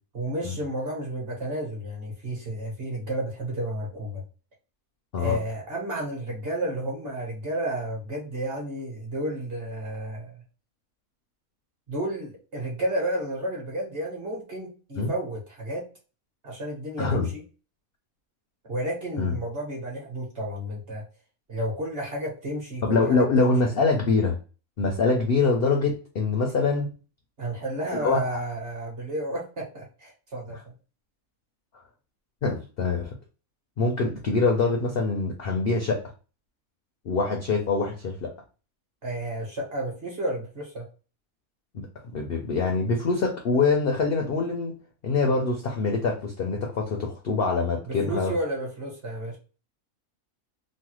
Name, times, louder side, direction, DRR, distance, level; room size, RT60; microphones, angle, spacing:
voice 1, 0.1-4.2 5.2-10.4 11.9-15.8 16.4-17.4 18.7-21.0 21.5-23.5 27.4-30.7 39.0-40.8 47.9-49.4, right 1 dB, 45° right, -1 dB, 1.2 m, -32 dB
voice 2, 17.0-17.3 19.2-19.3 22.8-24.4 24.8-26.9 28.0-28.4 32.4-33.1 33.8-36.0 37.0-38.3 41.7-41.9 42.1-44.7 45.0-48.3, left 4 dB, 65° left, 2 dB, 0.6 m, -24 dB
3.1 x 2.2 x 3.0 m, 0.35 s
omnidirectional pair, 1.5 m